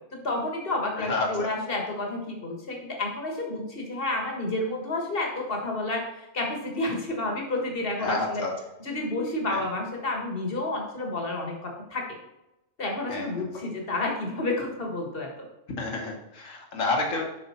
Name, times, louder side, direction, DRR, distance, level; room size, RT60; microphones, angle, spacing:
voice 1, 0.1-8.4 8.8-12.0 12.8-15.5, left 2 dB, 45° left, 1 dB, 1.7 m, -30 dB
voice 2, 1.0-1.5 8.0-8.5 9.5-9.6 13.1-13.5 15.8-17.2, left 3 dB, 75° left, 0 dB, 1.7 m, -29 dB
7.1 x 5.4 x 4.3 m, 0.94 s
omnidirectional pair, 1.4 m